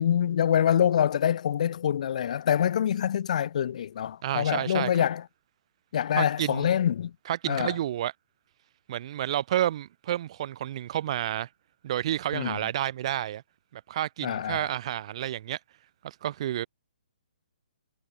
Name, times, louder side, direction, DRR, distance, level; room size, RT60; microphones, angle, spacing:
voice 1, 0.0-5.2 5.9-7.1 7.5-7.7 12.3-12.6 14.2-14.7, left 9 dB, 50° left, 1.2 m, -25 dB
voice 2, 4.2-5.0 6.2-6.7 7.3-8.1 8.9-11.5 11.8-13.4 13.7-15.6 16.0-16.7, right 12 dB, 40° right, 0.6 m, -30 dB
hypercardioid pair, 155°, 5 cm